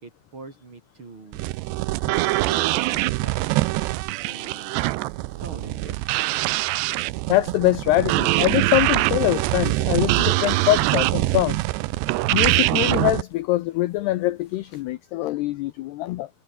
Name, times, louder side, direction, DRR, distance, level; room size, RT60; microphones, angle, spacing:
voice 1, 0.0-1.5 2.0-3.5 4.2-4.9 5.4-6.3, right 3 dB, 30° right, 3.8 m, -42 dB
sound 1, 1.3-13.2, right 19 dB, 85° right, 2.6 m, -23 dB
sound 2, 7.0-14.9, left 5 dB, 55° left, 7.5 m, -56 dB
voice 2, 7.3-11.6 12.3-16.3, left 16 dB, 80° left, 2.5 m, -23 dB
omnidirectional pair, 5.6 m